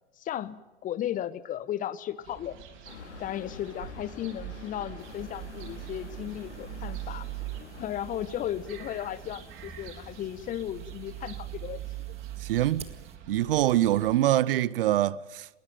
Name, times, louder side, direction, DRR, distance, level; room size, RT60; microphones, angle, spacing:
voice 1, 0.2-2.6 3.2-7.2 7.7-11.9, left 11 dB, 25° left, 1.0 m, -35 dB
sound 1, 2.2-14.2, right 12 dB, 35° right, 3.4 m, -42 dB
sound 2, 2.8-11.4, left 6 dB, 70° left, 2.6 m, -49 dB
sound 3, 5.0-13.2, right 7 dB, 20° right, 1.7 m, -53 dB
voice 2, 12.4-12.9 13.3-15.5, right 13 dB, 55° right, 0.8 m, -24 dB
20.0 x 19.5 x 9.2 m
figure-of-eight pair, 95°, 35 cm